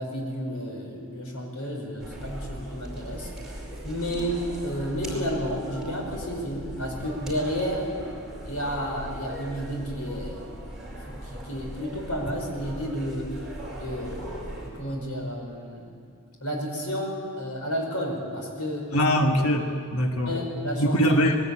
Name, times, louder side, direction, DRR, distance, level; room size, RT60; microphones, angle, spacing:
voice 1, 0.0-3.3 3.8-7.9 8.4-10.4 11.1-13.3 13.7-15.9 16.4-19.1 20.2-21.2, equal, 90° left, 1 dB, 5.2 m, -31 dB
sound 1, 2.0-14.7, right 1 dB, ahead, 5.1 m, -39 dB
voice 2, 18.9-20.3 20.8-21.4, equal, 70° left, 4 dB, 1.4 m, -22 dB
21.0 x 18.0 x 8.5 m, 2.4 s
head